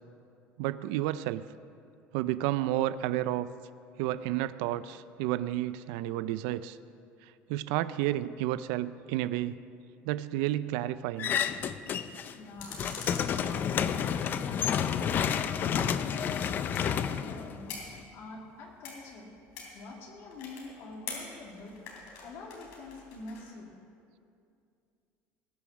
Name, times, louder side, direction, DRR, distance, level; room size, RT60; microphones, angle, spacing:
voice 1, 0.6-1.4 2.1-3.5 4.0-6.8 7.2-9.6 10.0-11.3, right 14 dB, 85° right, 15 dB, 0.4 m, -31 dB
sound 1, 11.2-12.3 12.6-18.0, left 8 dB, 40° left, 0.5 m, -30 dB
voice 2, 12.3-13.8 14.2-17.7 18.1-19.3 19.7-21.8 22.2-23.7, left 3 dB, 65° left, -1 dB, 2.2 m, -46 dB
sound 2, 12.6-14.2 15.6-23.5, left 5 dB, 90° left, 3.5 m, -46 dB
20.0 x 6.9 x 6.2 m, 2.5 s
cardioid pair, 135°, 5 cm